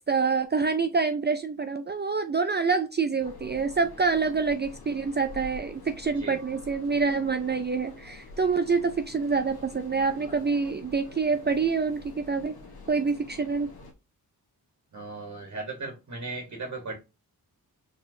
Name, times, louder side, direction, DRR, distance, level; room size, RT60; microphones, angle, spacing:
voice 1, 0.1-12.6 12.9-13.7, right 4 dB, 30° right, 0.5 m, -26 dB
sound 1, 3.2-13.9, left 3 dB, 80° left, 1.3 m, -47 dB
voice 2, 14.9-17.0, right 3 dB, 50° right, 1.4 m, -37 dB
4.7 x 3.5 x 2.7 m
cardioid pair, 75°, 37 cm